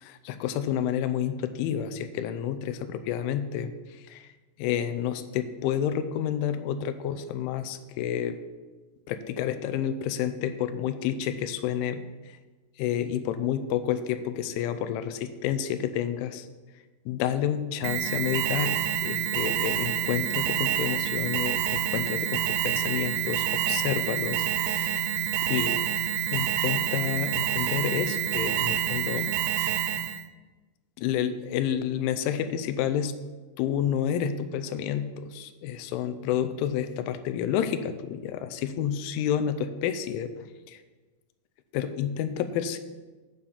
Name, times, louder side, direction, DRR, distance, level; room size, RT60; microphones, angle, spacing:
voice 1, 0.0-3.7 4.1-4.2 4.6-8.4 9.1-12.0 12.8-16.5 17.1-18.8 19.0-25.1 25.4-25.8 26.3-29.3 29.6-29.8 31.0-33.1 33.6-40.3 40.7-40.8 41.7-42.8, left 9 dB, 85° left, 10 dB, 2.9 m, -29 dB
Alarm, 17.8-30.2, right 11 dB, 85° right, 3.2 m, -27 dB
9.6 x 5.4 x 7.2 m, 1.3 s
omnidirectional pair, 5.8 m